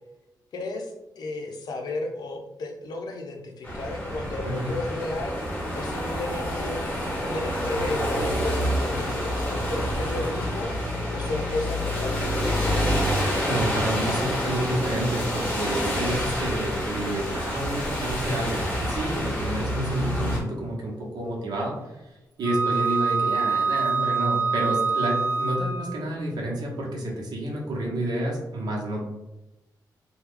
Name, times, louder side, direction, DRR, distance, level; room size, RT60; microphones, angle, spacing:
voice 1, 0.5-6.8 7.3-13.2, left 2 dB, 65° left, 2 dB, 0.6 m, -34 dB
sound 1, 3.6-20.4, equal, 15° left, 0.8 m, -28 dB
voice 2, 13.4-21.8 22.4-29.1, right 1 dB, 65° right, -2 dB, 0.9 m, -29 dB
Wind instrument woodwind instrument, 22.4-26.0, right 5 dB, 30° right, 0.6 m, -25 dB
3.0 x 2.2 x 3.6 m, 0.98 s
wide cardioid pair, 145°, 7 cm